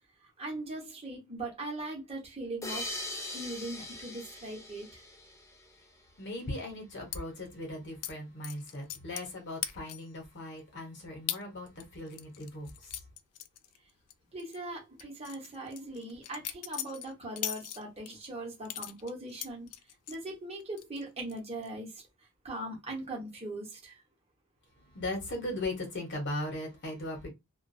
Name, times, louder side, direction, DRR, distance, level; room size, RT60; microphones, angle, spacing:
voice 1, 0.2-2.9 3.3-5.0 14.3-19.7 20.1-24.0, right 2 dB, 30° right, 0.9 m, -40 dB
sound 1, 2.6-5.9, left 1 dB, 15° left, 0.5 m, -41 dB
voice 2, 6.2-12.9 24.8-27.3, left 1 dB, 50° left, 1.0 m, -38 dB
sound 2, 7.1-7.2 8.0-8.1 8.4-9.3 9.6-10.2 10.6-10.7 11.3-11.4 11.8-14.1 14.4-14.6 15.0-18.1 18.7-20.2 20.6-21.0 21.3-21.7, left 12 dB, 85° left, 0.3 m, -39 dB
2.4 x 2.2 x 2.6 m
head